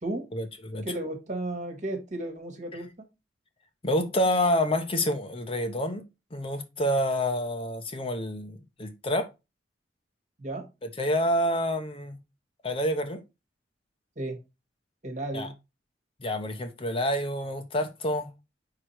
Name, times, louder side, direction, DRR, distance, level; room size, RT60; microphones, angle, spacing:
voice 1, 0.3-0.8 3.8-6.0 6.3-9.3 11.0-12.2 12.6-13.2 15.3-15.5 16.2-18.3, left 1 dB, 30° left, 0.8 m, -28 dB
voice 2, 0.8-3.1 10.4-10.7 14.2-14.4 15.0-15.5, right 1 dB, 45° right, 1.8 m, -34 dB
5.0 x 4.9 x 4.4 m
head